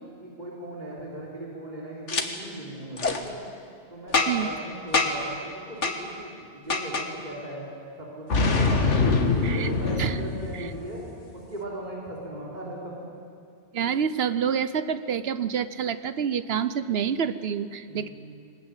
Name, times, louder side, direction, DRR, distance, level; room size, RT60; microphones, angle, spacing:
voice 1, 0.2-3.4 3.9-7.7 8.0-9.0 9.4-11.0 11.3-13.1 17.9-18.1, right 1 dB, 40° right, -4 dB, 3.9 m, -38 dB
Boom, 2.1-2.2 3.0-3.2 4.1-4.5 4.9-5.3 5.8-6.0 6.7-7.1 8.3-11.0, left 3 dB, 80° left, 1.9 m, -24 dB
voice 2, 13.7-18.1, right 7 dB, 60° right, 13 dB, 1.0 m, -27 dB
22.0 x 19.5 x 9.0 m, 2.4 s
omnidirectional pair, 1.2 m